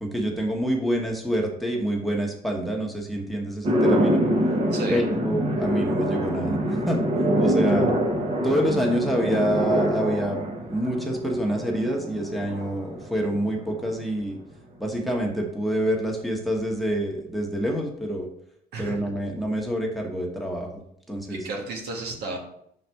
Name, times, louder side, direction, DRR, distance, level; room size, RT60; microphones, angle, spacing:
voice 1, 0.0-4.2 4.9-7.0 7.4-7.9 8.4-14.4 14.8-18.3 18.8-20.8 21.1-21.5, equal, ahead, 0 dB, 1.2 m, -27 dB
sound 1, 3.6-14.0, equal, 35° right, 1.2 m, -25 dB
voice 2, 4.7-5.0 18.7-19.0 21.3-22.4, right 2 dB, 75° right, 0 dB, 1.6 m, -32 dB
5.7 x 4.1 x 4.6 m, 0.72 s
cardioid pair, 110°, 17 cm